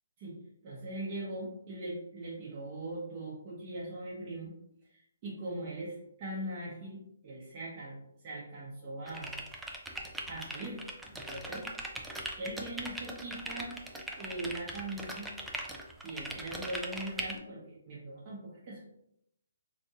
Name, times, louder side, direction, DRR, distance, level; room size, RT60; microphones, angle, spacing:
voice 1, 0.2-4.5 4.8-9.3 10.3-10.8 11.1-11.7 12.4-13.8 14.1-15.3 16.0-18.9, right 1 dB, 35° right, -7 dB, 0.8 m, -41 dB
sound 1, 9.1-17.4, right 1 dB, 5° right, 0.4 m, -40 dB
3.4 x 2.5 x 2.7 m, 0.78 s
hypercardioid pair, 155°, 0 cm